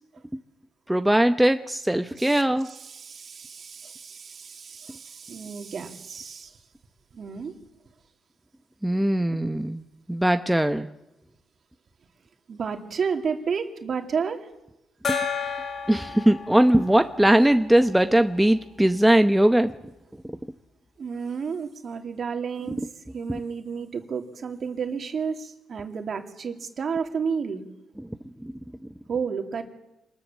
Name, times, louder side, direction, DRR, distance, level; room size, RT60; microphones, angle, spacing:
voice 1, 0.9-2.7 8.8-9.8 10.1-10.9 15.1-15.2 15.9-19.7 20.2-20.4 22.8-22.9 28.4-28.5, right 1 dB, 5° right, 7 dB, 0.9 m, -20 dB
voice 2, 2.2-6.5 7.1-7.5 12.5-14.5 21.0-22.8 23.1-27.6 29.1-29.6, right 6 dB, 50° right, 5 dB, 2.6 m, -31 dB
Gong, 15.0-18.3, left 5 dB, 45° left, 3.2 m, -33 dB
25.5 x 20.0 x 7.3 m, 0.94 s
cardioid pair, 90°, 0 cm